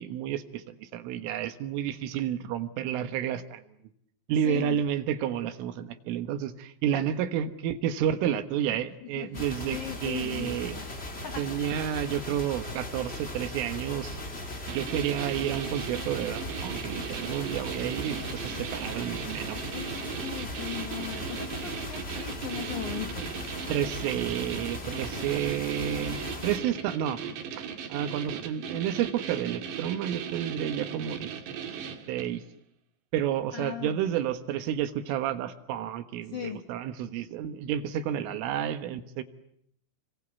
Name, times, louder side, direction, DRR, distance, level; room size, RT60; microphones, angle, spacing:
voice 1, 0.0-3.6 4.3-10.8 11.4-14.2 14.7-19.6 23.7-27.2 27.5-27.6 27.9-31.3 32.1-32.4 33.1-39.2, right 10 dB, 80° right, 9 dB, 4.0 m, -30 dB
voice 2, 4.4-4.8 6.9-7.1 8.7-8.8 9.1-9.4 9.7-11.6 19.7-23.3 33.5-34.1 36.3-36.6, left 10 dB, 70° left, 6 dB, 1.9 m, -39 dB
sound 1, 9.3-26.6, left 1 dB, 20° left, 2.1 m, -38 dB
sound 2, 14.7-32.4, right 7 dB, 65° right, 4.2 m, -38 dB
30.0 x 24.0 x 8.4 m, 0.72 s
omnidirectional pair, 5.7 m